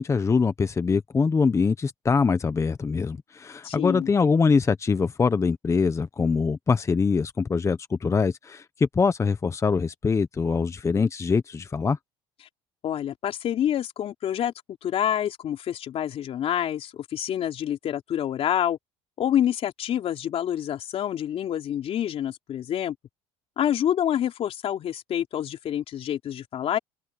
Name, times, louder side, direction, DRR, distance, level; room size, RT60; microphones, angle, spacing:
voice 1, 0.0-12.0, left 5 dB, 25° left, 1.0 m, -23 dB
voice 2, 3.6-4.1 12.8-14.5 14.8-18.8 19.2-22.9 23.6-26.8, left 10 dB, 50° left, 3.5 m, -27 dB
supercardioid pair, 95°, 13 cm